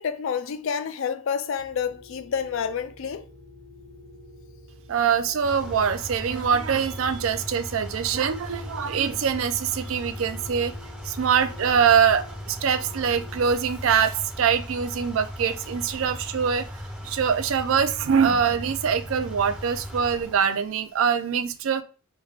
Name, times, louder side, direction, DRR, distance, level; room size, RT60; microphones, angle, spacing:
voice 1, 0.0-3.3, left 7 dB, 65° left, 0.4 m, -29 dB
sound 1, 1.6-13.5, left 2 dB, 40° right, 0.8 m, -49 dB
voice 2, 4.9-10.7 11.1-16.6 17.0-21.8, right 7 dB, 65° right, 0.4 m, -23 dB
sound 2, 5.4-20.5, equal, 5° right, 0.5 m, -38 dB
3.3 x 2.3 x 3.3 m
head